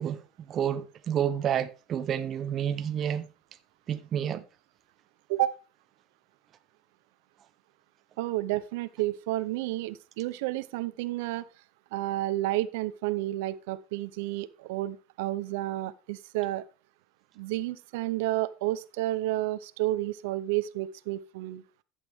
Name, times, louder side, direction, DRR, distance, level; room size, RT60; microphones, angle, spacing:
voice 1, 0.0-3.3 3.9-4.4, right 9 dB, 25° right, 0.7 m, -30 dB
voice 2, 8.2-11.4 11.9-16.6 17.4-21.6, right 16 dB, 70° right, 0.6 m, -31 dB
12.0 x 8.2 x 3.5 m
cardioid pair, 170°, 0 cm